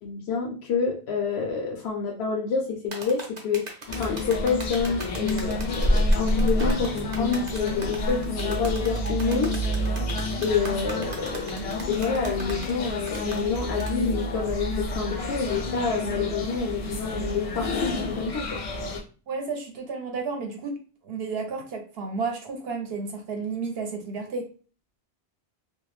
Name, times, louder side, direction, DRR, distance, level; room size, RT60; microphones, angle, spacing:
voice 1, 0.0-3.6 4.0-9.5 10.4-11.6 11.9-18.6, left 5 dB, 85° left, -1 dB, 0.8 m, -28 dB
sound 1, 2.9-14.0, right 2 dB, 50° right, 0.7 m, -40 dB
sound 2, 3.9-19.0, left 1 dB, 50° left, 0.5 m, -28 dB
Fireworks, 5.9-9.1 9.4-9.9 11.5-12.3, equal, 20° right, 0.3 m, -43 dB
voice 2, 19.3-20.7 21.0-24.5, right 4 dB, 75° right, 3 dB, 0.9 m, -32 dB
2.5 x 2.0 x 3.0 m, 0.37 s
omnidirectional pair, 1.0 m